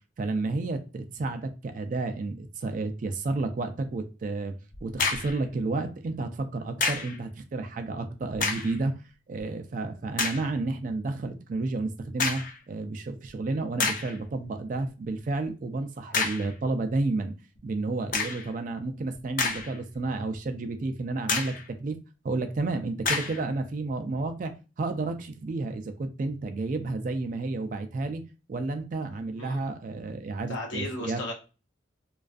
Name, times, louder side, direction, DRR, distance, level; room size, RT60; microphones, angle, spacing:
voice 1, 0.2-4.6 4.8-9.0 9.3-17.3 17.6-22.0 22.2-28.2 28.5-31.2, right 3 dB, 45° right, 0.3 m, -31 dB
sound 1, 4.7-5.4 6.8-7.2 8.3-8.8 9.4-9.5 10.2-10.5 12.2-12.6 13.3-13.4 13.8-14.2 16.1-16.5 18.1-18.5 19.1-19.9 20.3-20.4 21.3-21.7 23.0-23.4, left 4 dB, 45° left, 0.4 m, -29 dB
voice 2, 30.5-31.3, left 2 dB, 85° left, 0.8 m, -35 dB
2.4 x 2.3 x 2.3 m
head